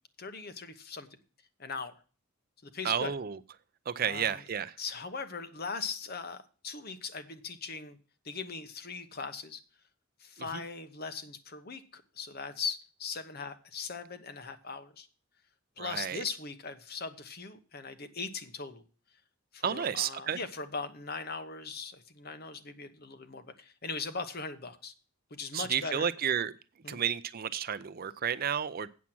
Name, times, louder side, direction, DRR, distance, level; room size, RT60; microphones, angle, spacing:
voice 1, 0.2-1.1 1.6-2.0 2.6-3.1 4.0-4.4 4.8-8.0 8.2-9.6 10.2-15.1 15.8-18.8 19.5-24.9 25.3-26.1 26.8-27.0, left 4 dB, 45° left, 1.0 m, -39 dB
voice 2, 2.8-3.4 3.9-4.8 10.5-10.6 15.8-16.2 19.6-20.4 25.5-26.5 26.9-28.9, right 8 dB, 45° right, 0.4 m, -31 dB
8.4 x 7.3 x 6.0 m
head